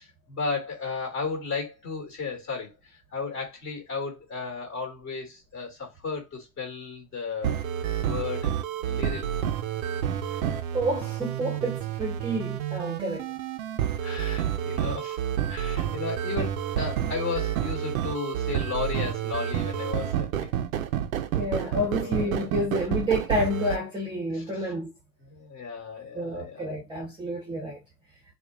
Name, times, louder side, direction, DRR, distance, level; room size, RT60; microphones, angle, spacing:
voice 1, 0.0-7.6 8.0-8.5 8.8-9.3 14.0-15.2 15.5-20.5 21.7-22.5 24.3-24.7 25.2-26.6, left 5 dB, 25° left, 2.5 m, -34 dB
sound 1, 7.4-23.8, right 10 dB, 60° right, 0.7 m, -29 dB
voice 2, 10.7-13.3 21.3-24.9 26.1-27.8, equal, 10° right, 1.1 m, -29 dB
6.8 x 2.5 x 2.4 m
hypercardioid pair, 130°, 47 cm